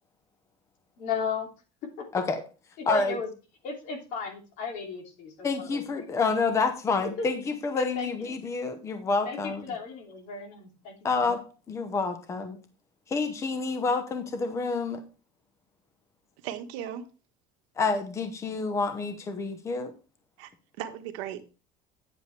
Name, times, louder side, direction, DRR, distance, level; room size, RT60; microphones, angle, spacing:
voice 1, 1.0-1.5 2.0-2.1 2.9-3.3 3.6-5.8 7.2-7.3 7.7-8.1 9.2-11.3, left 5 dB, 55° left, 2.9 m, -35 dB
voice 2, 2.9-3.2 5.4-9.7 11.0-11.4 11.7-12.6 13.1-15.0 17.8-19.9, left 4 dB, 20° left, 0.9 m, -28 dB
voice 3, 16.4-17.0 20.4-20.5 20.8-21.5, right 10 dB, 85° right, 1.3 m, -36 dB
9.5 x 8.0 x 3.3 m
cardioid pair, 165°, 15 cm